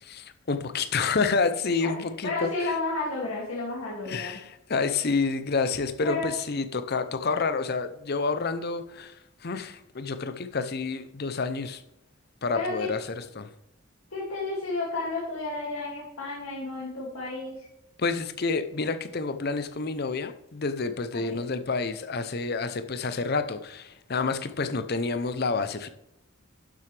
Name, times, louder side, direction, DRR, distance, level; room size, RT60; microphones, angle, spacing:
voice 1, 0.0-2.7 4.1-11.8 12.4-13.5 18.0-25.9, left 4 dB, 50° left, 10 dB, 0.6 m, -29 dB
voice 2, 2.2-4.3 6.0-6.3 12.5-12.9 14.1-17.7 21.1-21.4, left 3 dB, 80° left, -5 dB, 2.4 m, -32 dB
11.5 x 7.5 x 3.3 m, 0.82 s
head